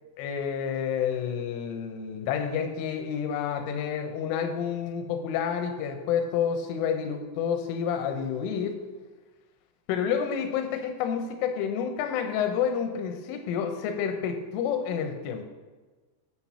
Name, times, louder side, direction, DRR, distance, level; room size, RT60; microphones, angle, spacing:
voice 1, 0.2-8.8 9.9-15.4, left 7 dB, 85° left, 5 dB, 3.3 m, -29 dB
8.6 x 5.8 x 5.9 m, 1.3 s
omnidirectional pair, 5.6 m